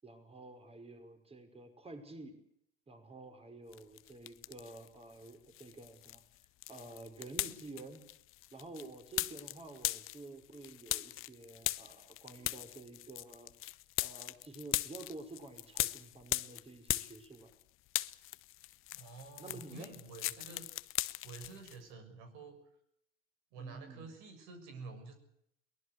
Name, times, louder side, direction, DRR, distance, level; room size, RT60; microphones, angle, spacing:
voice 1, 0.0-2.4 2.9-6.2 6.7-8.1 8.5-13.5 14.0-17.5 19.4-19.9 23.5-24.2, right 2 dB, 20° right, 6 dB, 5.5 m, -50 dB
sound 1, 3.7-4.9 5.2-17.6 17.9-21.8, left 17 dB, 45° left, 0.9 m, -39 dB
voice 2, 18.9-20.7 21.2-22.6 23.5-25.1, right 4 dB, 60° right, 6 dB, 6.8 m, -49 dB
23.0 x 19.0 x 8.2 m, 0.73 s
hypercardioid pair, 75°, 29 cm